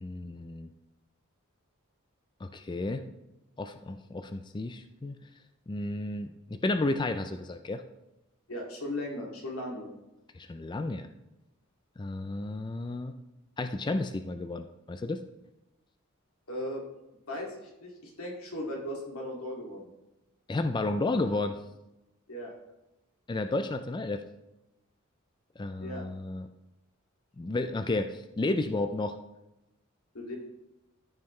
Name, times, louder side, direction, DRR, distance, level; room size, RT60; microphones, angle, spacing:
voice 1, 0.0-0.7 2.4-3.0 3.6-5.2 5.7-7.8 10.3-11.1 12.0-13.2 13.6-15.2 20.5-21.6 23.3-24.2 25.6-26.5 27.4-29.2, left 2 dB, 20° left, 8 dB, 0.3 m, -32 dB
voice 2, 8.5-9.9 16.5-16.8 17.3-19.9 22.3-22.5 25.8-26.0 30.1-30.3, left 1 dB, 80° left, -2 dB, 2.4 m, -37 dB
13.5 x 5.7 x 3.2 m, 0.93 s
head